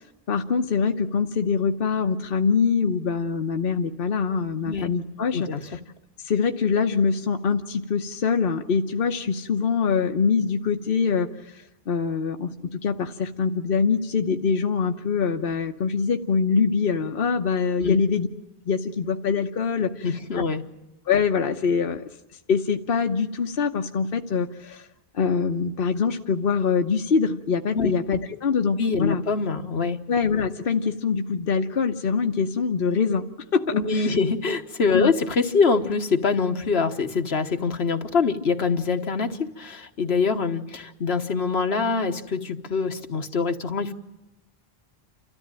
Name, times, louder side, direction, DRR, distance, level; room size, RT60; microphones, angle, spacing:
voice 1, 0.3-5.5 6.2-18.3 18.6-20.0 21.1-22.0 22.5-24.9 25.1-29.2 30.1-33.2 33.5-34.1 34.9-35.1, left 5 dB, 65° left, 4 dB, 1.1 m, -24 dB
voice 2, 20.0-20.6 27.7-27.9 28.8-30.0 33.7-43.9, left 4 dB, 80° left, 6 dB, 1.5 m, -24 dB
29.5 x 13.5 x 9.0 m, 0.96 s
omnidirectional pair, 1.0 m